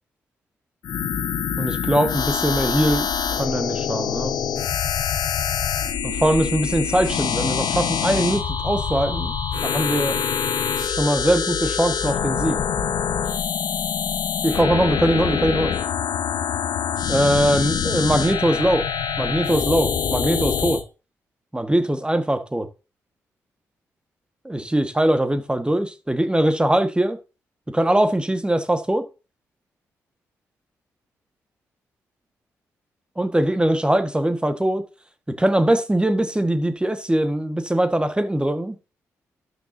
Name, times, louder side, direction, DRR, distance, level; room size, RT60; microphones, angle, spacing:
sound 1, 0.8-20.8, left 7 dB, 70° left, 1.2 m, -25 dB
voice 1, 1.6-3.1 3.4-4.3 6.0-9.3 9.6-10.2 10.9-12.6 14.4-15.7 17.1-18.9 19.2-20.8 21.5-22.7 24.4-27.2 27.7-29.0 33.2-34.8 35.4-38.8, right 1 dB, 15° right, 1.6 m, -21 dB
12.5 x 6.5 x 2.8 m
hypercardioid pair, 40°, 7 cm